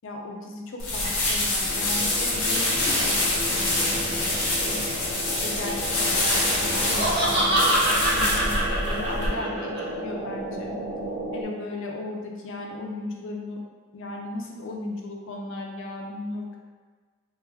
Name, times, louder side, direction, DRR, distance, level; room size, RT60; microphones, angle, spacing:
voice 1, 0.0-4.3 4.6-4.8 5.4-10.7 11.3-13.6 13.9-16.6, left 2 dB, 55° left, 0 dB, 0.5 m, -36 dB
sound 1, 0.8-9.3, left 2 dB, 80° left, 0.9 m, -26 dB
sound 2, 1.7-11.4, equal, 60° right, 0.9 m, -34 dB
Laughter, 6.6-9.8, right 1 dB, 25° right, 0.7 m, -24 dB
3.3 x 2.1 x 3.3 m, 1.5 s
head